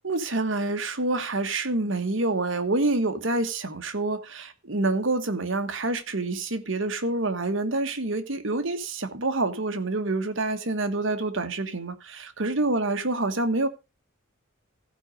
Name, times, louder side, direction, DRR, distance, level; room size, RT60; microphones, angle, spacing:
voice 1, 0.0-13.7, right 2 dB, 60° right, 1.3 m, -27 dB
15.0 x 5.2 x 5.1 m
head